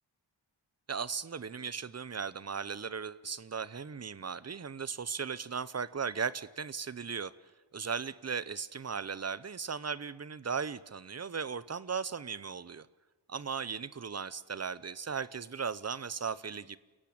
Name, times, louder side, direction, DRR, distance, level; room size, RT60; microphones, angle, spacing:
voice 1, 0.9-7.3 7.7-12.9 13.3-16.8, right 6 dB, 35° right, 17 dB, 0.8 m, -37 dB
29.5 x 17.0 x 8.8 m, 1.2 s
wide cardioid pair, 145°, 43 cm